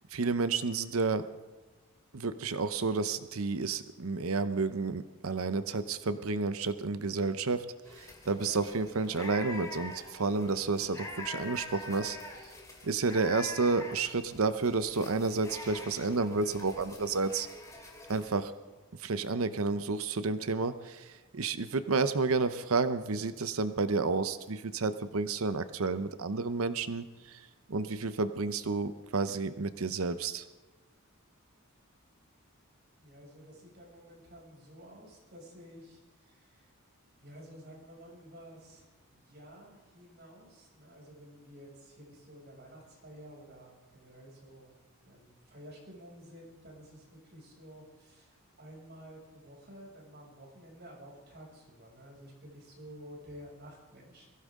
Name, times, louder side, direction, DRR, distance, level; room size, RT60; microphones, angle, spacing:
voice 1, 0.1-1.3 2.1-7.7 7.9-12.2 12.8-17.5 18.1-18.5 19.0-27.4 27.7-30.4, right 4 dB, 75° right, 11 dB, 0.8 m, -31 dB
sound 1, 7.8-18.4, left 2 dB, 15° left, 2.6 m, -45 dB
voice 2, 33.0-36.7 37.2-44.7 45.0-54.3, equal, 45° right, -3 dB, 6.5 m, -52 dB
22.5 x 15.5 x 3.7 m, 1.2 s
head